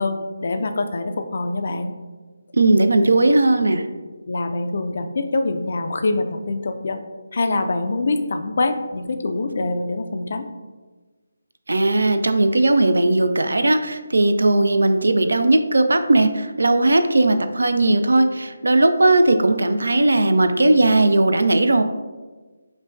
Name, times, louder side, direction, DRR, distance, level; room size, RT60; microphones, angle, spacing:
voice 1, 0.0-1.9 4.3-7.0 7.3-10.5, left 2 dB, 55° left, 7 dB, 0.3 m, -24 dB
voice 2, 2.5-3.8 11.7-21.8, right 2 dB, 75° right, 8 dB, 0.3 m, -17 dB
5.1 x 2.1 x 2.5 m, 1.3 s
figure-of-eight pair, 155°, 0 cm